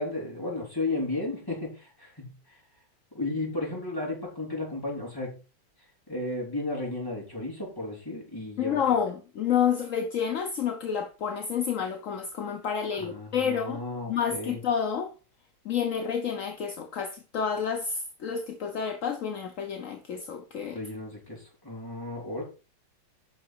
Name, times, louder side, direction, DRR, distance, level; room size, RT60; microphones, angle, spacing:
voice 1, 0.0-2.6 3.1-5.4 6.1-8.8 13.0-14.6 20.7-22.4, left 2 dB, 10° left, 4.3 m, -34 dB
voice 2, 8.6-13.8 14.1-15.1 15.6-20.8, left 7 dB, 55° left, 0.9 m, -29 dB
9.3 x 6.1 x 4.6 m
omnidirectional pair, 2.2 m